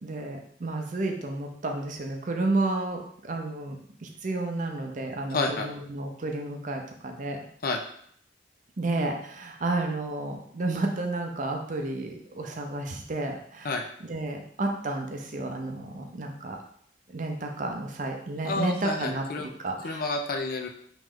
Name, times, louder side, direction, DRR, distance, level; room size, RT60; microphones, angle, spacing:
voice 1, 0.0-7.5 8.8-13.7 14.0-16.6 17.1-20.1, right 2 dB, 45° right, 3 dB, 0.6 m, -31 dB
voice 2, 5.3-5.7 7.6-7.8 13.6-13.8 18.4-19.5 19.8-20.7, left 3 dB, 55° left, 4 dB, 0.5 m, -29 dB
3.1 x 3.0 x 3.7 m, 0.65 s
head